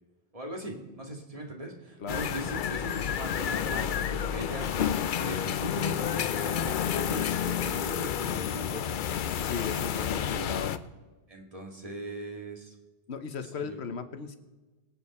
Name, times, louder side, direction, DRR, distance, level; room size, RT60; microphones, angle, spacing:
voice 1, 0.3-9.1 9.7-10.5 11.3-12.8 13.5-13.8, right 1 dB, 35° right, 1 dB, 2.2 m, -40 dB
voice 2, 2.0-2.4 9.4-10.8 13.1-14.4, left 6 dB, 80° left, 10 dB, 1.3 m, -36 dB
sound 1, 2.1-10.8, left 8 dB, 55° left, 0.7 m, -30 dB
23.0 x 9.0 x 4.3 m, 1.2 s
omnidirectional pair, 1.1 m